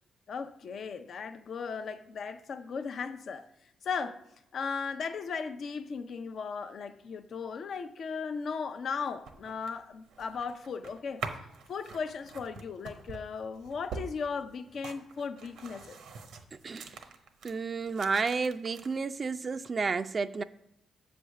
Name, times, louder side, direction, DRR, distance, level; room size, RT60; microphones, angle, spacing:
voice 1, 0.3-3.5 3.8-4.2 4.5-11.2 11.7-16.0, left 5 dB, 60° left, 0.5 m, -37 dB
sound 1, 9.0-17.5 17.8-19.0, right 5 dB, 80° right, 0.9 m, -45 dB
voice 2, 17.4-20.4, right 4 dB, 45° right, 0.4 m, -31 dB
7.6 x 3.4 x 6.4 m
supercardioid pair, 50°, 0 cm